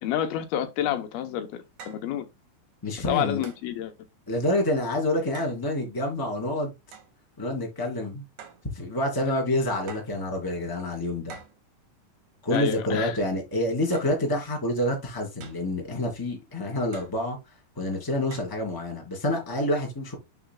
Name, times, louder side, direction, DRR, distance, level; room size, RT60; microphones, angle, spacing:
voice 1, 0.0-2.3 3.1-3.9 12.5-13.2, left 11 dB, 80° left, 2.7 m, -29 dB
sound 1, 0.9-1.0 1.8-2.1 3.4-3.7 5.3-5.6 6.9-7.1 8.4-8.7 9.9-10.2 11.3-11.6 12.5-12.8 13.9-14.2 15.4-15.7 16.9-17.2 18.3-18.6, right 7 dB, 60° right, 2.5 m, -45 dB
voice 2, 2.8-3.4 4.3-6.7 7.4-8.2 8.7-11.4 12.4-17.4 17.8-20.1, left 1 dB, 5° left, 2.1 m, -27 dB
11.0 x 4.9 x 2.2 m
omnidirectional pair, 4.5 m